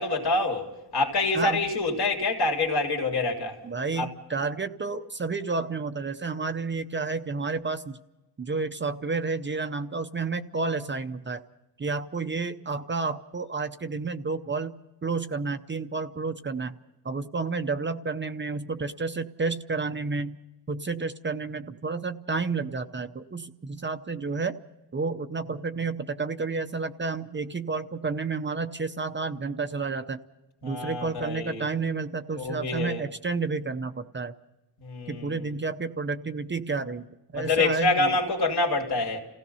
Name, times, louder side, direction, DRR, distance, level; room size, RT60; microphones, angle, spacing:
voice 1, 0.0-3.6 4.0-4.1 30.6-31.6 32.4-33.0 34.8-35.4 37.3-39.2, left 3 dB, 70° left, 3.2 m, -26 dB
voice 2, 3.6-8.0 8.4-11.4 11.8-14.7 15.0-16.8 17.0-20.4 20.7-24.5 24.9-30.2 30.6-34.3 35.1-37.1 37.3-38.2, right 4 dB, 30° right, 0.6 m, -30 dB
28.5 x 16.5 x 5.6 m
wide cardioid pair, 170°, 41 cm